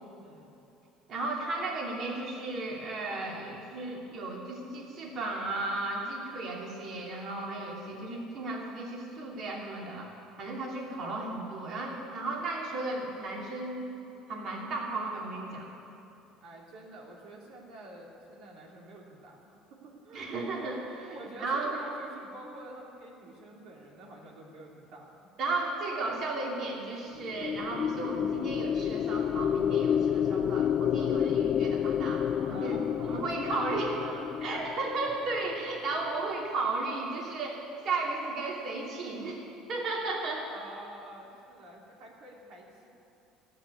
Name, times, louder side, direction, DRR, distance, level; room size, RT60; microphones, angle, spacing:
voice 1, 0.2-0.6 16.4-20.3 21.1-25.3 32.5-34.4 40.5-42.9, right 2 dB, 65° right, -3 dB, 2.7 m, -48 dB
voice 2, 1.1-10.1 10.4-13.9 14.3-15.7 20.1-21.7 25.4-33.9 34.4-37.6 37.8-39.4 39.7-40.5, right 2 dB, 50° right, -2 dB, 2.8 m, -34 dB
sound 1, 27.2-35.6, left 9 dB, 45° left, 0.3 m, -30 dB
13.5 x 9.6 x 9.7 m, 2.8 s
cardioid pair, 115°, 0 cm